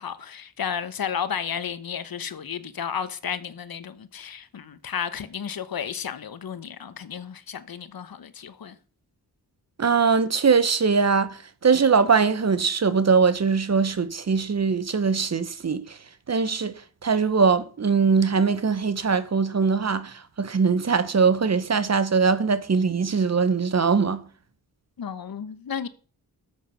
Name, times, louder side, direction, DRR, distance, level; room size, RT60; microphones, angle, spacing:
voice 1, 0.0-8.8 25.0-25.9, left 7 dB, 65° left, 1.2 m, -33 dB
voice 2, 9.8-16.0 16.3-16.7 17.0-24.3, right 5 dB, 40° right, 1.1 m, -21 dB
13.0 x 7.6 x 5.6 m
wide cardioid pair, 110°, 39 cm